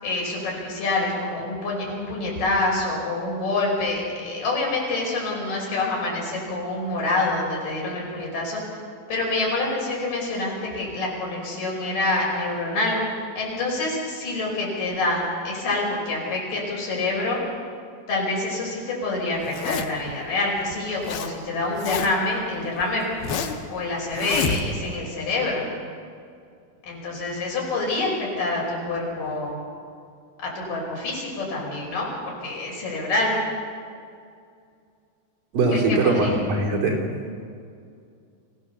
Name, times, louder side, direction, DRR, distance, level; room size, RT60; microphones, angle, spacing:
voice 1, 0.0-8.6 9.1-13.0 13.4-17.4 18.1-23.0 23.7-25.7 26.8-29.5 30.4-32.1 32.4-33.4 35.7-36.4, left 2 dB, 60° left, -3 dB, 7.2 m, -26 dB
Zipper (clothing), 19.4-20.1 20.7-21.3 21.6-22.3 22.8-23.7 24.1-25.0, left 6 dB, 90° left, 3.2 m, -28 dB
voice 2, 35.5-37.1, right 3 dB, 65° right, 0 dB, 4.6 m, -21 dB
27.0 x 16.0 x 7.1 m, 2.3 s
omnidirectional pair, 4.2 m